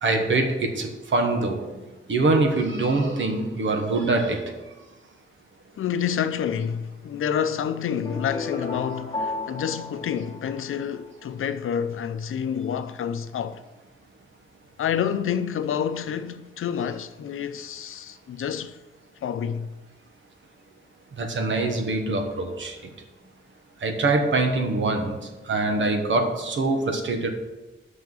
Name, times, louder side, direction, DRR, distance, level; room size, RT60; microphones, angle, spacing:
voice 1, 0.0-1.7 2.1-4.4 21.2-22.8 23.8-25.2 25.5-27.3, right 2 dB, 65° right, 1.2 m, -24 dB
voice 2, 5.8-13.6 14.8-18.8 19.2-19.7, left 8 dB, 90° left, 0.5 m, -28 dB
sound 1, 8.0-11.1, left 3 dB, 20° left, 0.9 m, -33 dB
6.1 x 5.8 x 7.1 m
wide cardioid pair, 165°, 21 cm